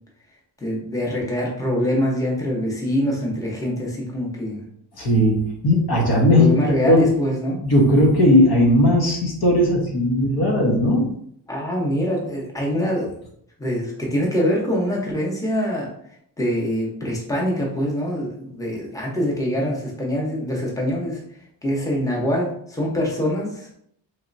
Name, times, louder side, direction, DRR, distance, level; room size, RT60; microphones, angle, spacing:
voice 1, 0.6-4.6 6.3-7.6 11.5-13.1 13.6-15.9 16.4-21.2 21.6-23.7, equal, 10° left, -3 dB, 1.0 m, -24 dB
voice 2, 5.0-6.5 6.8-7.1 7.6-11.1, left 1 dB, 60° left, -2 dB, 1.1 m, -17 dB
3.2 x 2.8 x 2.6 m, 0.68 s
cardioid pair, 75°, 43 cm